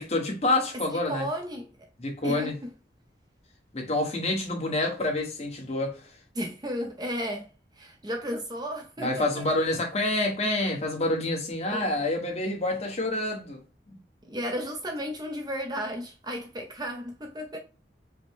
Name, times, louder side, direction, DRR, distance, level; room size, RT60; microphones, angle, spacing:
voice 1, 0.0-1.3 2.0-2.5 3.7-6.0 9.0-13.6, left 2 dB, 35° left, 1.1 m, -27 dB
voice 2, 0.9-1.7 2.2-2.7 6.3-7.5 7.8-9.6 11.7-11.9 14.2-17.6, equal, 20° right, 0.5 m, -34 dB
5.0 x 2.1 x 3.5 m
head